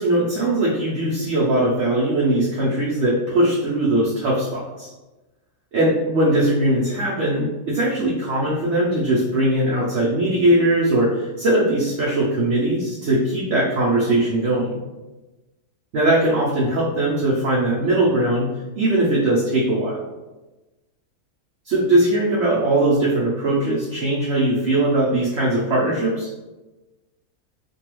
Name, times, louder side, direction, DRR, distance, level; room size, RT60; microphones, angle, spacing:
voice 1, 0.0-4.9 5.7-14.8 15.9-18.5 18.7-20.0 21.6-26.3, right 1 dB, 65° right, -6 dB, 0.7 m, -20 dB
2.7 x 2.3 x 3.0 m, 1.1 s
omnidirectional pair, 1.6 m